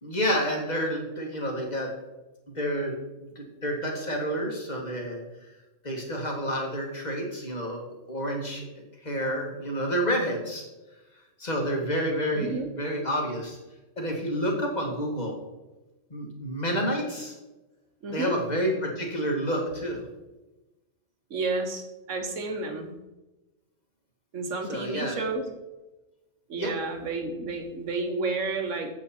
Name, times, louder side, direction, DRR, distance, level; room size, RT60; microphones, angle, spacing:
voice 1, 0.0-1.9 2.5-5.2 5.8-7.8 8.1-8.7 9.0-10.6 11.4-12.5 12.8-13.6 14.0-15.4 16.1-17.4 18.1-20.0 24.7-25.2 26.6-26.7, equal, 35° left, 1 dB, 2.0 m, -29 dB
voice 2, 12.3-12.7 18.0-18.4 21.3-22.9 24.3-25.5 26.5-28.9, right 3 dB, 85° right, 5 dB, 1.5 m, -31 dB
7.9 x 7.5 x 4.3 m, 1.1 s
omnidirectional pair, 1.3 m